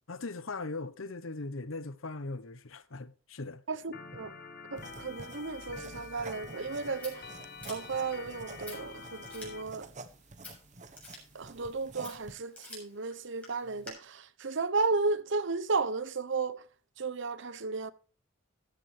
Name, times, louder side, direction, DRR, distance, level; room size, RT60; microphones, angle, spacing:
voice 1, 0.1-3.6, left 3 dB, 80° left, 1.0 m, -39 dB
voice 2, 3.7-4.3 4.7-7.3 7.7-9.9 11.3-16.6 17.0-17.9, right 4 dB, 65° right, 0.9 m, -34 dB
Organ, 3.9-9.6, left 4 dB, 50° left, 1.6 m, -47 dB
sound 1, 4.8-12.4, right 3 dB, 35° right, 1.1 m, -49 dB
Scissors, 6.5-13.9, left 2 dB, 5° left, 7.1 m, -52 dB
14.5 x 10.5 x 3.3 m
head